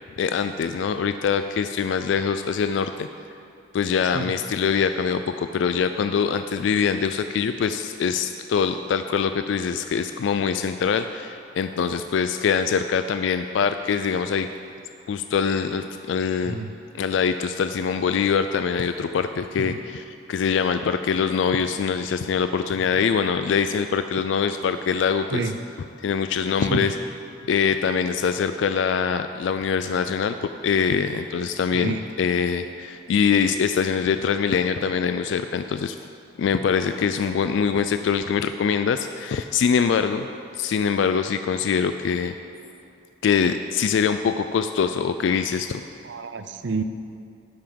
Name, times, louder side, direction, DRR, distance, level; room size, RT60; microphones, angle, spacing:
voice 1, 0.2-3.1 3.7-14.5 15.1-16.6 16.9-25.4 26.0-27.0 27.5-30.4 30.6-36.0 36.4-40.3 40.6-42.3 43.2-45.8, left 6 dB, 75° left, 9 dB, 0.3 m, -23 dB
voice 2, 46.0-46.8, right 4 dB, 70° right, 9 dB, 0.5 m, -29 dB
13.0 x 5.8 x 5.2 m, 2.6 s
head